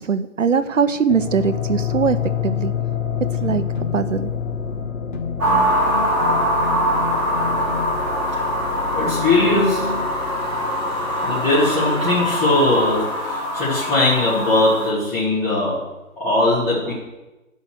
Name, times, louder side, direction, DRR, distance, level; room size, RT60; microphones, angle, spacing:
voice 1, 0.0-2.2 2.4-2.7 3.4-3.6 3.9-4.3, right 6 dB, 65° right, 11 dB, 0.9 m, -21 dB
sound 1, 1.1-13.1, left 7 dB, 70° left, 1.1 m, -28 dB
sound 2, 3.4-4.2 5.1-8.1 9.1-10.1, left 4 dB, 35° left, 1.2 m, -32 dB
sound 3, 5.4-14.9, equal, 15° right, 2.3 m, -23 dB
voice 2, 8.9-9.9 11.2-15.9 16.2-16.9, left 2 dB, 5° left, -19 dB, 2.6 m, -19 dB
13.0 x 5.7 x 6.4 m, 1.1 s
hypercardioid pair, 170°, 41 cm